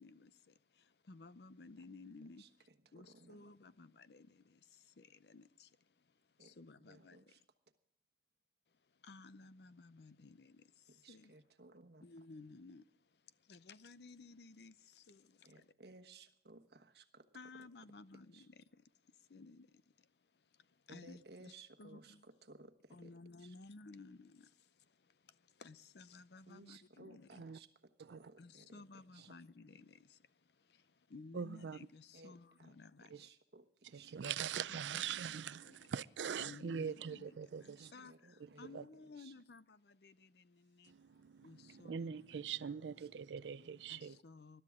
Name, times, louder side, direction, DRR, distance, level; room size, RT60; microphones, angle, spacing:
voice 1, 0.0-7.4 8.7-11.3 12.0-15.7 17.3-21.5 21.8-22.3 22.9-27.4 28.4-33.3 34.2-34.3 34.7-35.9 36.4-42.4 43.9-44.6, left 3 dB, 70° left, 0.6 m, -57 dB
voice 2, 2.8-3.5 6.4-6.5 6.8-7.4 10.9-12.0 15.4-17.3 17.5-17.7 18.3-18.5 20.9-23.5 26.5-27.7 28.0-28.8 29.1-29.3 32.1-32.7 33.1-34.2 37.5-38.8 39.2-39.3 42.7-43.1 43.6-43.8, right 3 dB, 65° right, 1.2 m, -60 dB
voice 3, 31.3-31.8 33.1-33.2 33.9-37.9 38.4-38.8 40.9-44.2, right 7 dB, 85° right, 0.4 m, -43 dB
20.5 x 12.5 x 3.7 m
head